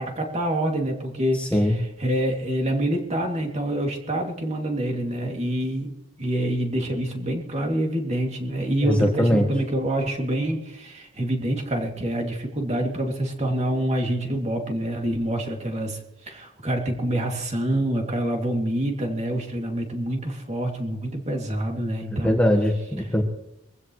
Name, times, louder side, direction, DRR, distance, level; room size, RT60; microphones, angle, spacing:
voice 1, 0.0-5.9 6.2-22.4 23.0-23.1, right 1 dB, 30° right, 1 dB, 2.7 m, -26 dB
voice 2, 1.3-1.8 8.8-9.5 22.2-23.2, left 1 dB, 5° left, 1 dB, 1.5 m, -21 dB
23.0 x 15.5 x 3.2 m, 0.85 s
head